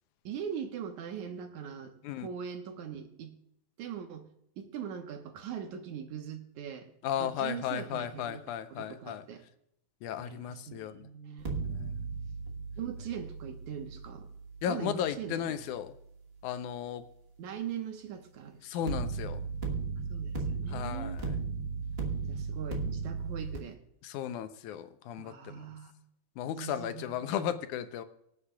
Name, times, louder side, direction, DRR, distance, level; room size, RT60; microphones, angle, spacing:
voice 1, 0.2-3.3 3.8-4.3 4.6-6.9 7.2-8.4 8.7-9.4 10.2-11.5 12.8-14.3 14.7-15.6 17.4-19.1 20.1-21.2 22.3-23.8 25.2-25.9 26.6-27.5, right 8 dB, 80° right, 6 dB, 2.6 m, -41 dB
voice 2, 7.0-9.2 10.0-11.1 11.6-12.1 14.6-15.9 16.4-17.1 18.6-19.4 20.7-21.2 24.0-25.6 26.4-28.0, left 10 dB, 90° left, 10 dB, 2.2 m, -35 dB
sound 1, 11.4-16.5 18.9-23.6, right 4 dB, 40° right, 0.9 m, -36 dB
24.5 x 8.2 x 2.4 m, 0.75 s
omnidirectional pair, 3.4 m